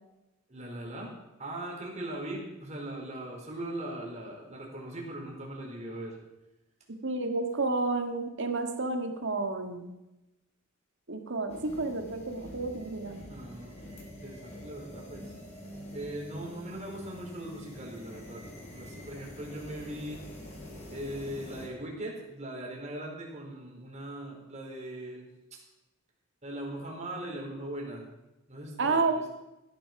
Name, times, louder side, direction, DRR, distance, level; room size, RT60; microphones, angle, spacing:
voice 1, 0.5-6.2 13.3-15.4 15.9-20.2 20.9-25.6 26.4-28.0 28.5-29.2, right 1 dB, 35° right, -1 dB, 4.4 m, -40 dB
voice 2, 7.0-9.9 11.1-13.3 28.8-29.3, right 3 dB, 60° right, 5 dB, 1.8 m, -30 dB
sound 1, 11.5-21.7, left 1 dB, 30° left, 4.9 m, -46 dB
16.5 x 11.5 x 6.0 m, 0.96 s
head